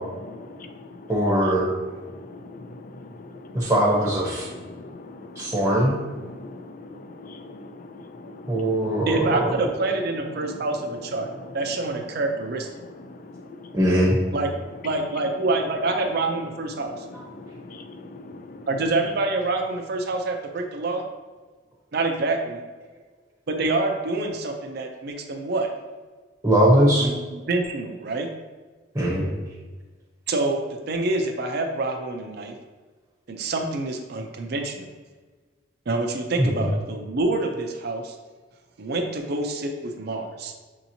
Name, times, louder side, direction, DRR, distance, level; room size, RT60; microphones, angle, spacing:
voice 1, 0.2-3.7 4.3-9.1 10.4-10.7 11.3-11.5 12.8-13.8 16.7-18.7, left 2 dB, 45° left, 7 dB, 0.4 m, -42 dB
voice 2, 1.1-1.7 3.5-4.5 5.4-6.0 8.5-9.4 13.7-14.2 26.4-27.1 28.9-29.3 36.4-36.5, right 1 dB, 15° right, -5 dB, 0.8 m, -20 dB
voice 3, 9.1-11.3 11.5-12.7 14.3-14.5 14.8-17.0 18.7-21.1 21.9-22.6 23.5-25.7 27.0-28.3 30.3-32.5 33.3-34.9 35.9-38.1 38.8-40.5, right 2 dB, 55° right, 4 dB, 0.5 m, -26 dB
6.6 x 2.8 x 2.7 m, 1.3 s
head